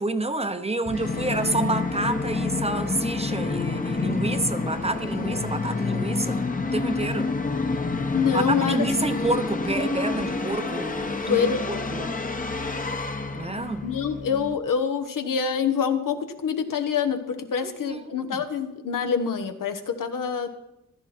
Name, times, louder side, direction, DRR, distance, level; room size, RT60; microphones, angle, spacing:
voice 1, 0.0-6.5 6.7-7.3 8.3-12.2 13.3-13.9 17.6-18.4, right 2 dB, 20° right, 9 dB, 0.8 m, -29 dB
Musical instrument, 0.8-14.6, left 3 dB, 25° left, 1.0 m, -28 dB
voice 2, 8.1-8.9 11.3-11.6 13.8-20.5, left 7 dB, 80° left, 7 dB, 1.2 m, -26 dB
15.0 x 12.0 x 4.3 m, 0.87 s
cardioid pair, 90°, 32 cm